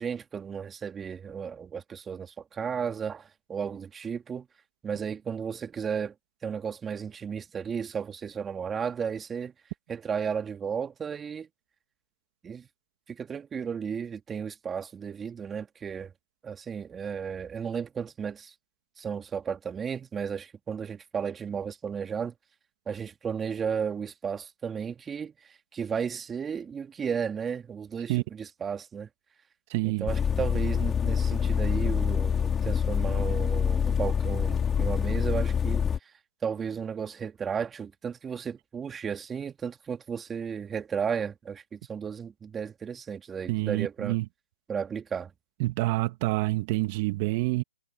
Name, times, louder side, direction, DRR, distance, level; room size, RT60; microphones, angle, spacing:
voice 1, 0.0-4.5 4.8-6.1 6.4-9.5 9.9-11.5 12.4-12.7 13.1-16.1 16.4-18.5 19.0-22.3 22.9-29.1 29.8-36.1 36.4-44.2 44.7-45.3, right 7 dB, 10° right, 2.5 m, -34 dB
voice 2, 29.7-30.1 43.5-44.3 45.6-47.6, right 21 dB, 35° right, 2.0 m, -27 dB
sound 1, 30.1-36.0, left 7 dB, 15° left, 4.5 m, -26 dB
hypercardioid pair, 140°, 0 cm